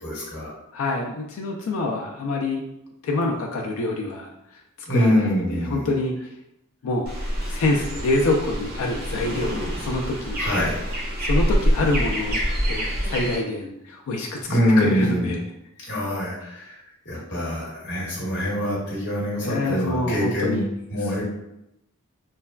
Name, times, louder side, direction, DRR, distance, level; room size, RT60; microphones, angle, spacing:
voice 1, 0.0-0.6 4.9-5.9 10.4-10.8 14.5-15.4 15.8-16.7 17.0-20.6 20.9-21.2, equal, 55° left, -6 dB, 1.1 m, -24 dB
voice 2, 0.7-2.6 3.0-6.2 6.8-7.1 7.5-10.4 11.2-15.4 19.4-20.7, left 2 dB, 90° left, 0 dB, 0.3 m, -26 dB
sound 1, 7.1-13.4, equal, 45° right, 0.7 m, -26 dB
3.2 x 2.1 x 2.3 m, 0.85 s
head